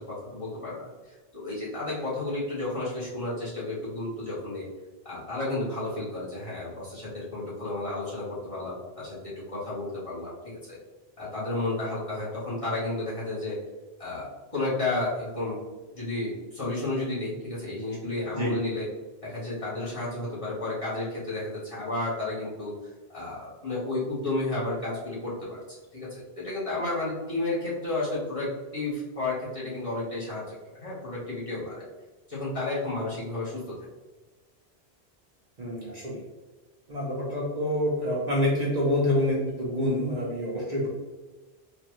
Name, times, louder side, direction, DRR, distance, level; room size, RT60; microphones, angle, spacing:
voice 1, 0.0-4.6 5.0-10.8 11.2-13.6 14.0-15.6 15.9-18.9 19.2-25.6 25.9-31.8 32.3-33.8, left 2 dB, 30° left, -9 dB, 1.4 m, -32 dB
voice 2, 35.6-36.2 36.9-40.9, left 1 dB, 45° right, -5 dB, 0.8 m, -27 dB
3.9 x 2.5 x 3.0 m, 1.2 s
omnidirectional pair, 1.1 m